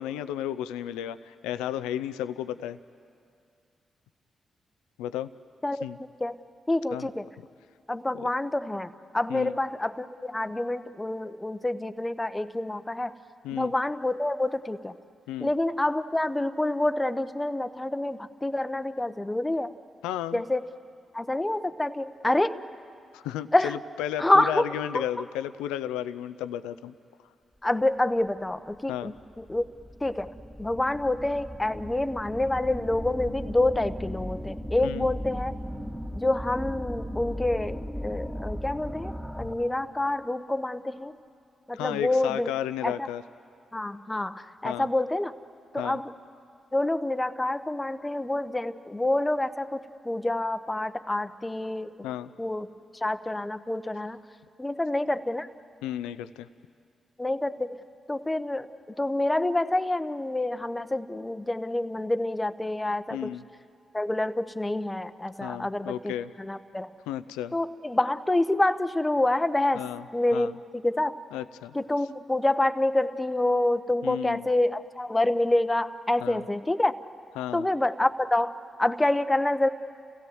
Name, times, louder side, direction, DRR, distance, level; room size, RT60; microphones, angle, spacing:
voice 1, 0.0-2.8 5.0-5.3 5.8-6.0 6.9-7.1 8.1-8.3 9.3-9.6 13.4-13.7 15.3-15.5 20.0-20.4 23.1-26.9 28.9-29.1 34.8-35.1 41.7-43.2 44.6-44.9 45.8-46.0 52.0-52.3 55.8-56.5 63.1-63.4 65.4-66.3 67.1-67.5 69.7-70.0 70.3-70.5 71.3-71.8 74.0-74.5 76.2-76.4 77.4-77.7, left 11 dB, 85° left, 13 dB, 0.5 m, -33 dB
voice 2, 5.6-6.4 6.7-7.3 7.9-13.2 13.5-14.9 15.4-19.7 20.3-20.6 21.1-22.6 23.5-23.8 24.2-25.1 27.6-29.6 30.0-30.3 30.6-35.6 36.2-41.2 41.7-42.5 42.8-43.1 43.7-45.3 45.7-46.1 46.7-52.0 52.4-52.7 53.0-54.2 54.6-55.5 57.2-57.8 58.1-58.7 59.0-63.3 63.9-66.9 67.5-69.8 70.1-71.2 71.7-76.9 77.5-79.7, left 1 dB, 15° left, 9 dB, 1.0 m, -27 dB
sound 1, 28.4-28.5 29.1-39.8, equal, 5° right, 2.4 m, -37 dB
29.5 x 16.5 x 7.8 m, 2.4 s
hypercardioid pair, 40°, 0 cm